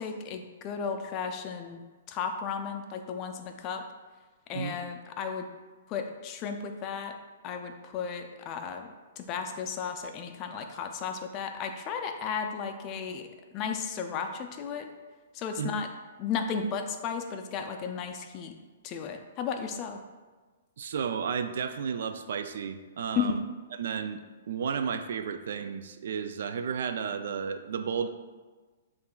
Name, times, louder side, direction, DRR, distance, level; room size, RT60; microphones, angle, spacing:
voice 1, 0.0-1.8 2.1-3.8 4.5-5.5 5.9-7.1 7.4-8.9 9.2-13.2 13.5-14.9 15.3-15.9 16.2-18.5 18.8-20.0 23.1-23.3, left 6 dB, 30° left, 5 dB, 0.4 m, -34 dB
voice 2, 20.8-23.4 23.8-24.2 24.5-28.1, right 6 dB, 70° right, 9 dB, 0.3 m, -32 dB
6.7 x 2.5 x 2.3 m, 1.3 s
hypercardioid pair, 140°, 0 cm